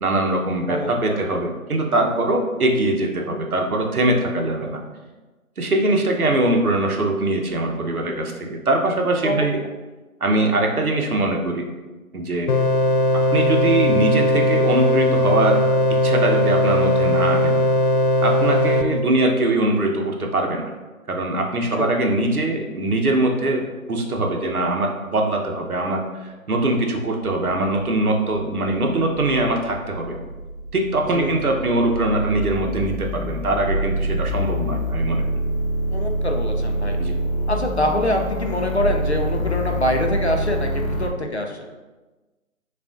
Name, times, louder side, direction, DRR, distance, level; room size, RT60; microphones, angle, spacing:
voice 1, 0.0-4.8 5.6-9.6 10.2-11.7 12.1-12.5 13.1-15.6 16.0-17.6 18.2-20.6 21.1-30.2 30.7-35.2 37.0-37.1, right 2 dB, 80° right, 2 dB, 0.9 m, -22 dB
voice 2, 0.7-1.2 9.2-9.5 18.9-19.0 21.8-21.9 31.1-31.6 35.9-37.0 37.5-41.7, left 1 dB, 50° left, 2 dB, 0.5 m, -25 dB
sound 1, 12.5-18.8, left 1 dB, 90° left, 0.6 m, -18 dB
sound 2, 27.8-41.1, equal, 65° left, 1.0 m, -26 dB
6.6 x 2.4 x 2.4 m, 1.2 s
figure-of-eight pair, 175°, 43 cm